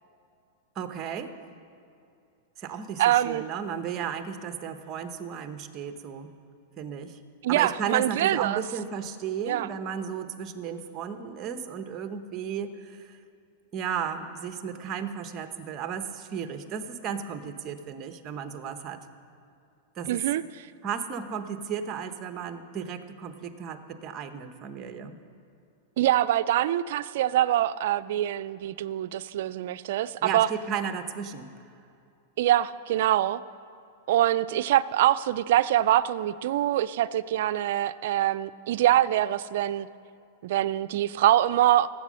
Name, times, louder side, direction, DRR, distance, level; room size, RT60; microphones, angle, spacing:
voice 1, 0.7-1.3 2.6-6.3 6.8-7.2 7.5-13.2 13.7-19.1 19.9-20.2 20.8-25.2 30.2-31.5, right 7 dB, 30° right, 8 dB, 1.0 m, -34 dB
voice 2, 3.0-3.4 7.4-8.6 9.4-9.7 20.1-20.7 26.0-30.5 32.4-33.4 34.1-39.9 40.4-41.9, right 13 dB, 65° right, 14 dB, 0.4 m, -24 dB
16.5 x 8.3 x 6.3 m, 2.6 s
hypercardioid pair, 135°, 0 cm